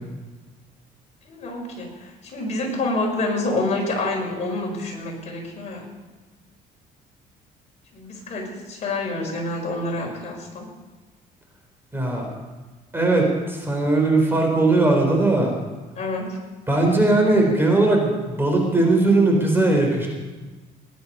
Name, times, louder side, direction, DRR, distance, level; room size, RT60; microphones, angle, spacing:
voice 1, 1.3-5.8 7.9-10.7 16.0-16.3, left 2 dB, 40° left, -1 dB, 5.5 m, -27 dB
voice 2, 11.9-12.3 12.9-15.5 16.7-20.1, right 2 dB, 15° right, 1 dB, 3.8 m, -19 dB
19.0 x 10.5 x 5.5 m, 1.3 s
cardioid pair, 110°, 17 cm